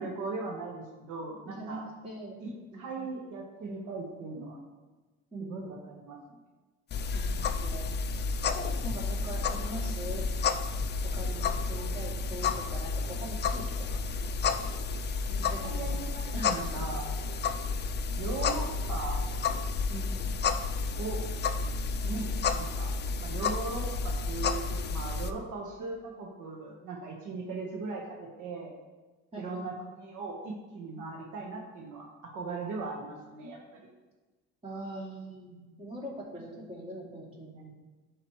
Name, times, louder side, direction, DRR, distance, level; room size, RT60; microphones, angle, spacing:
voice 1, 0.0-1.8 2.4-4.6 5.4-6.4 15.3-17.1 18.2-19.2 21.0-21.2 22.0-22.9 23.2-28.7 29.4-33.9, right 3 dB, 70° right, 0 dB, 1.3 m, -39 dB
voice 2, 1.4-2.4 2.7-3.1 5.3-5.8 7.1-7.9 8.8-10.2 11.1-13.9 15.4-16.0 16.3-16.6 19.9-20.3 29.3-29.7 34.6-37.7, right 1 dB, 20° right, -5 dB, 2.6 m, -42 dB
sound 1, 6.9-25.3, left 4 dB, 35° left, 0.5 m, -31 dB
11.0 x 4.8 x 3.1 m, 1.2 s
cardioid pair, 105°, 32 cm